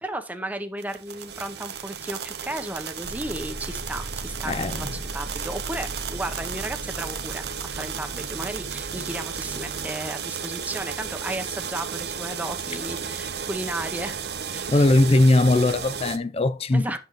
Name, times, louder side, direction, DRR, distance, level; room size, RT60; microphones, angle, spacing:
voice 1, 0.0-14.9 16.7-17.0, right 1 dB, 10° right, 0.8 m, -34 dB
sound 1, 0.8-16.2, right 7 dB, 70° right, 0.8 m, -34 dB
sound 2, 3.0-9.9, right 1 dB, 50° right, 1.2 m, -38 dB
voice 2, 4.5-4.9 14.7-17.0, left 2 dB, 35° left, 0.5 m, -20 dB
8.1 x 7.1 x 3.0 m
head